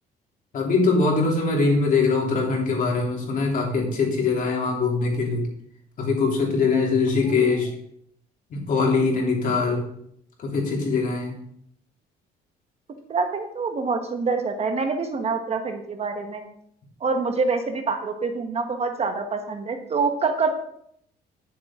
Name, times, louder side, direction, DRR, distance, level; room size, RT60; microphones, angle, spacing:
voice 1, 0.5-5.5 6.0-7.7 8.5-9.9 10.4-11.4, left 4 dB, 50° left, -1 dB, 3.1 m, -22 dB
voice 2, 13.1-16.4 17.0-20.5, right 4 dB, 40° right, 6 dB, 1.1 m, -26 dB
9.7 x 7.5 x 3.7 m, 0.70 s
cardioid pair, 110°, 17 cm